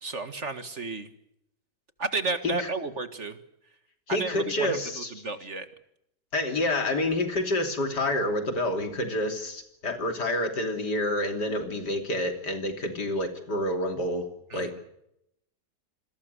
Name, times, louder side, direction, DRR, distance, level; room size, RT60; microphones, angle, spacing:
voice 1, 0.0-1.1 2.0-3.4 4.1-5.7 14.5-14.7, right 3 dB, 40° right, 10 dB, 2.0 m, -32 dB
voice 2, 4.1-5.1 6.3-14.3 14.5-14.8, left 1 dB, 70° left, 6 dB, 3.6 m, -28 dB
28.0 x 21.5 x 6.8 m, 0.79 s
omnidirectional pair, 1.9 m